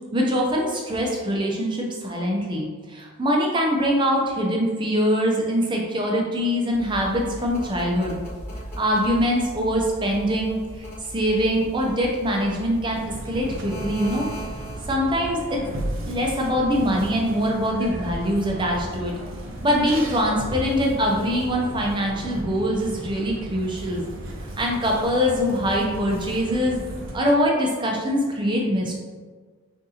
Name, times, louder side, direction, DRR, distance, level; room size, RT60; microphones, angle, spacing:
voice 1, 0.1-8.2 8.8-14.3 14.9-15.6 16.0-19.1 19.6-24.0 24.6-26.8 27.1-28.9, equal, 20° right, -1 dB, 0.6 m, -23 dB
sound 1, 6.7-15.1, right 1 dB, 10° left, 1.2 m, -38 dB
sound 2, 12.9-27.2, right 1 dB, 60° right, 0.7 m, -35 dB
6.2 x 2.6 x 2.8 m, 1.5 s
head